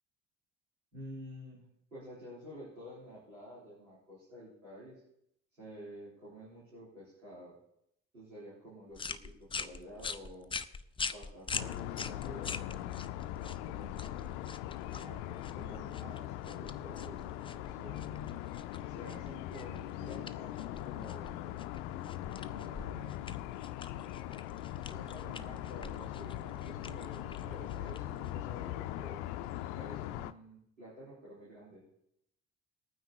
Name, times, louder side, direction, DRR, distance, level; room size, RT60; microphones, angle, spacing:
voice 1, 0.9-1.6 1.9-5.0 5.6-7.6 8.1-10.5 11.1-12.9 13.6-14.1 14.9-18.0 18.8-21.3 22.3-23.2 24.9-29.3 29.7-31.8, equal, 85° right, -11 dB, 3.9 m, -50 dB
sound 1, 8.9-28.5, left 5 dB, 15° left, 0.5 m, -45 dB
sound 2, 11.5-30.3, left 13 dB, 65° left, 0.6 m, -41 dB
21.5 x 9.4 x 2.9 m, 0.76 s
figure-of-eight pair, 45°, 39 cm